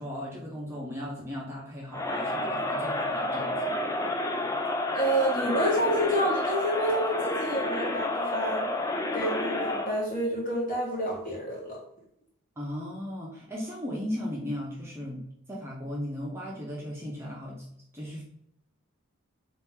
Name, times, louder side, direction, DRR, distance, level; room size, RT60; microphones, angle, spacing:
voice 1, 0.0-3.8 12.6-15.2 15.5-17.6 17.9-18.2, equal, 10° right, -4 dB, 0.7 m, -36 dB
Crowd, 1.9-10.0, left 2 dB, 15° left, 0.3 m, -30 dB
voice 2, 4.9-8.7 9.1-11.8, right 1 dB, 40° left, -3 dB, 1.3 m, -28 dB
3.8 x 2.9 x 3.5 m, 0.74 s
head